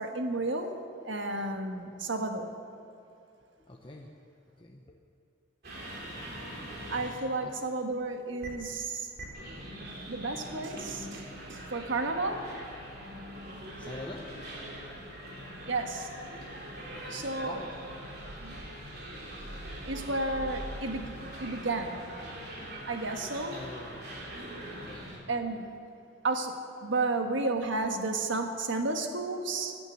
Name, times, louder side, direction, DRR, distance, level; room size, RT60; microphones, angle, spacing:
voice 1, 0.0-2.5 6.9-9.1 10.1-12.5 15.6-16.1 17.1-17.6 18.4-18.6 19.8-22.0 22.9-23.6 25.3-25.8 26.2-29.8, right 2 dB, 75° right, 5 dB, 1.4 m, -32 dB
voice 2, 3.6-5.1 7.4-7.6 13.0-13.4 13.7-14.7 15.1-15.2 16.6-18.0 21.2-21.3 23.5-25.3 28.3-28.4, left 1 dB, 25° left, 0 dB, 0.9 m, -47 dB
sound 1, 5.6-7.1 8.4-8.5 9.2-25.2, equal, 50° right, 3.2 m, -42 dB
15.0 x 9.5 x 9.9 m, 2.5 s
head